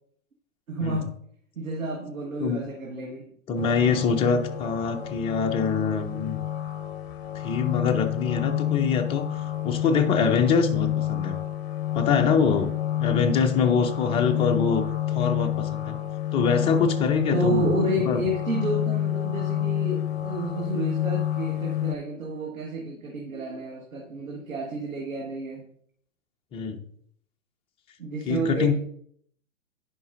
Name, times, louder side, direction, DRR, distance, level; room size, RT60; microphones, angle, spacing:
voice 1, 0.7-1.1 1.6-3.3 17.3-25.7 28.0-28.8, right 2 dB, 85° right, 1.6 m, -30 dB
voice 2, 3.5-6.4 7.3-9.3 9.6-11.4 11.9-12.7 13.0-16.0 16.3-17.7 18.0-18.2 26.5-26.8 28.3-28.8, left 5 dB, 15° left, 0.5 m, -24 dB
sound 1, 3.6-22.0, left 12 dB, 50° left, 0.7 m, -28 dB
10.5 x 5.2 x 2.6 m
figure-of-eight pair, 115°, 40 cm